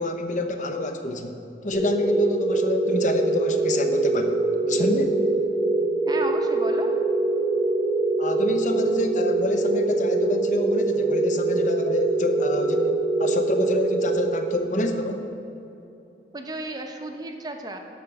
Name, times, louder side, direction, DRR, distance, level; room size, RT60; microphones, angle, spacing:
voice 1, 0.0-5.2 8.2-15.3, left 1 dB, 45° left, 6 dB, 0.7 m, -28 dB
sound 1, 1.7-14.9, right 2 dB, 75° left, 2.2 m, -24 dB
voice 2, 6.1-6.9 16.3-17.8, right 2 dB, 20° right, 4 dB, 0.7 m, -33 dB
13.0 x 5.1 x 5.9 m, 2.9 s
head